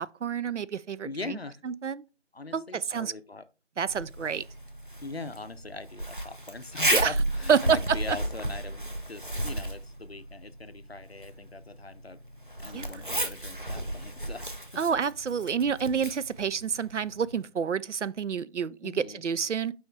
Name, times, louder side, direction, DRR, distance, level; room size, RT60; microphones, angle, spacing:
voice 1, 0.0-1.4 1.6-2.0 2.5-3.1 3.8-4.4 6.9-7.1 7.5-7.8 8.1-8.2 12.7-12.8 14.8-19.7, right 7 dB, 75° right, 0.5 m, -28 dB
voice 2, 1.0-1.6 2.3-3.5 5.0-12.2 12.6-14.5 18.8-19.2, left 3 dB, 60° left, 0.6 m, -41 dB
Zipper (clothing), 3.9-17.4, right 1 dB, 45° right, 0.8 m, -34 dB
6.9 x 4.8 x 3.2 m
figure-of-eight pair, 180°, 36 cm